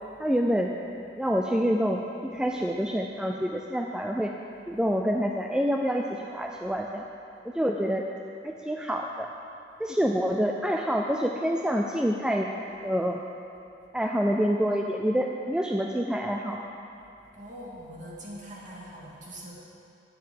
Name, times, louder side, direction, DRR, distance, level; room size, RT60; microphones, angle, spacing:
voice 1, 0.2-0.7 1.2-2.0 2.3-4.3 4.7-7.1 7.5-8.0 8.4-9.3 9.8-12.5 12.8-13.2 13.9-16.6, equal, 5° right, 1 dB, 0.4 m, -27 dB
voice 2, 17.3-19.5, equal, 40° right, -5 dB, 2.2 m, -42 dB
9.4 x 7.4 x 7.7 m, 2.7 s
head